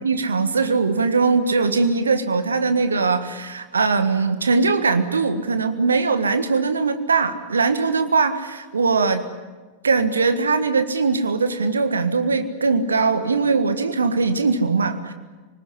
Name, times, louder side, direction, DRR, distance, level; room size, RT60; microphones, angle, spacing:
voice 1, 0.0-9.3 9.8-15.1, right 4 dB, 75° right, 10 dB, 1.6 m, -21 dB
26.0 x 19.5 x 10.0 m, 1.3 s
figure-of-eight pair, 90°, 0 cm